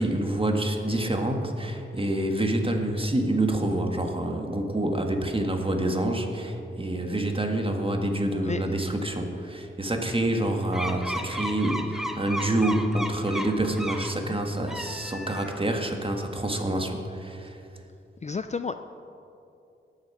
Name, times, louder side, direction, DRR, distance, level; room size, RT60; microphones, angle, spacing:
voice 1, 0.0-17.6, right 1 dB, 25° right, 3 dB, 1.7 m, -27 dB
sound 1, 10.7-14.1 14.6-15.8, equal, ahead, 0.9 m, -34 dB
voice 2, 18.2-18.7, left 5 dB, 35° left, 10 dB, 0.4 m, -31 dB
19.0 x 6.5 x 4.8 m, 2.7 s
cardioid pair, 45°, 21 cm